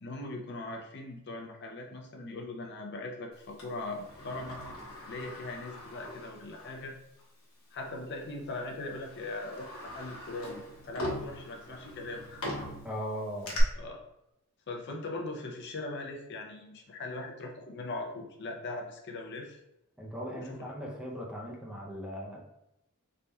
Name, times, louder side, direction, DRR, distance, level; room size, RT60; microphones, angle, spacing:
voice 1, 0.0-4.6 5.1-6.9 7.7-12.4 13.8-14.0 14.7-19.6 20.3-20.7, left 2 dB, 50° left, 2 dB, 0.5 m, -40 dB
Sliding door, 3.6-6.8 7.2-7.3 8.2-8.4 8.9-13.6, left 1 dB, 65° left, 1.0 m, -41 dB
voice 2, 12.8-13.6 20.0-22.4, equal, 5° right, -3 dB, 0.5 m, -38 dB
4.0 x 3.3 x 2.2 m, 0.84 s
head